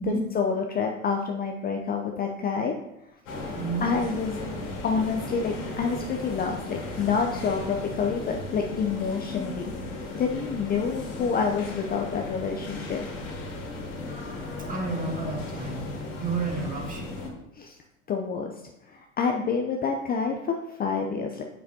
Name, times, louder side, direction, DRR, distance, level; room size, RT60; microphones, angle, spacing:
voice 1, 0.1-2.7 3.8-4.4 4.8-9.7 10.1-13.1 17.6-17.8 18.1-18.5 18.9-21.4, left 5 dB, 25° left, 2 dB, 0.6 m, -28 dB
sound 1, 3.3-17.3, left 2 dB, 75° left, 2.4 m, -36 dB
voice 2, 3.5-3.9 14.7-15.8 16.1-17.1, right 4 dB, 20° right, 0 dB, 1.9 m, -30 dB
7.2 x 7.0 x 2.8 m, 0.89 s
hypercardioid pair, 85°, 40 cm